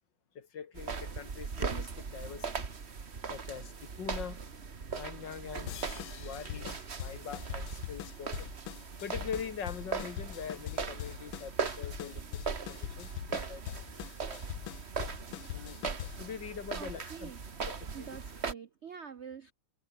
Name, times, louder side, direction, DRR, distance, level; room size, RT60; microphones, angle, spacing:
voice 1, 0.4-2.7 3.3-4.4 4.9-8.5 9.0-13.1 13.5-13.6 13.9-14.4 15.3-17.3 18.0-18.1, left 7 dB, 60° left, 2.3 m, -43 dB
sound 1, 0.7-18.5, right 5 dB, 35° right, 1.7 m, -39 dB
sound 2, 5.7-16.3, left 14 dB, 75° left, 1.6 m, -43 dB
voice 2, 16.8-17.4 17.9-19.5, right 7 dB, 70° right, 0.6 m, -46 dB
omnidirectional pair, 2.3 m